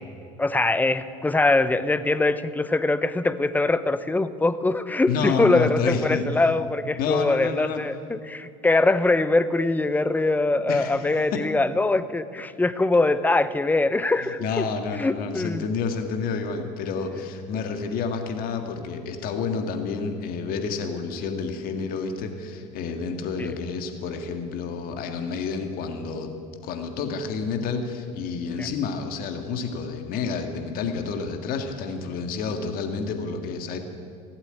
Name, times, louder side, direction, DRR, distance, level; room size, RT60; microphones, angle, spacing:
voice 1, 0.4-14.7 14.9-15.6 23.4-23.5 28.6-28.7, left 2 dB, 10° left, 14 dB, 0.7 m, -23 dB
voice 2, 5.1-6.3 7.0-7.8 10.7-11.0 11.3-11.4 14.4-26.3 26.6-33.8, left 5 dB, 60° left, 6 dB, 1.8 m, -29 dB
16.5 x 8.1 x 8.9 m, 2.4 s
supercardioid pair, 90°, 17 cm